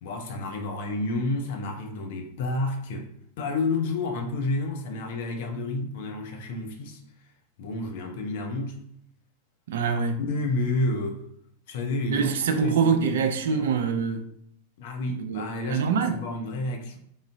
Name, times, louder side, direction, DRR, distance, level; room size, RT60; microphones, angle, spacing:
voice 1, 0.0-3.1 3.4-7.0 7.6-8.8 10.2-11.2 11.7-12.3 12.6-13.2 13.5-13.7 14.8-17.0, left 2 dB, 55° left, 0.7 m, -30 dB
voice 2, 9.7-10.2 12.1-14.2 15.2-15.4 15.7-16.2, right 6 dB, 60° right, 0.4 m, -24 dB
3.8 x 3.6 x 2.6 m
figure-of-eight pair, 90°, 0 cm